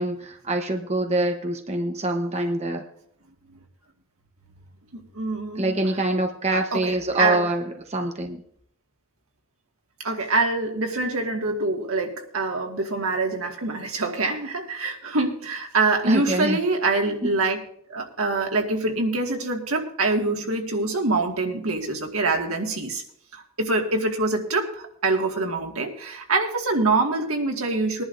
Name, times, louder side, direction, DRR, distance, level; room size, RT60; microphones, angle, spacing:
voice 1, 0.0-2.8 5.6-7.6 7.9-8.4 16.1-16.6 17.2-17.3, right 1 dB, 30° right, 4 dB, 1.0 m, -25 dB
voice 2, 4.9-5.8 6.5-7.4 10.0-17.6 17.9-23.0 23.3-28.0, right 3 dB, 90° right, 2 dB, 2.0 m, -25 dB
21.5 x 11.0 x 2.6 m, 0.67 s
head